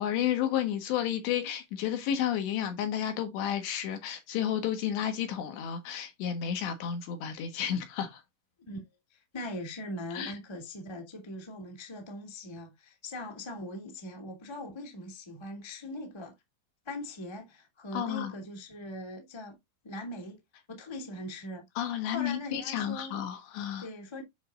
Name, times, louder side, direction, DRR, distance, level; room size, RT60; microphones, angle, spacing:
voice 1, 0.0-8.2 10.1-10.4 17.9-18.3 21.8-23.9, left 10 dB, 70° left, 3.2 m, -31 dB
voice 2, 9.1-16.3 16.8-19.6 19.8-20.4 20.7-21.6 22.1-23.2 23.8-24.2, left 1 dB, 15° left, 0.9 m, -41 dB
9.3 x 6.4 x 2.5 m
omnidirectional pair, 5.9 m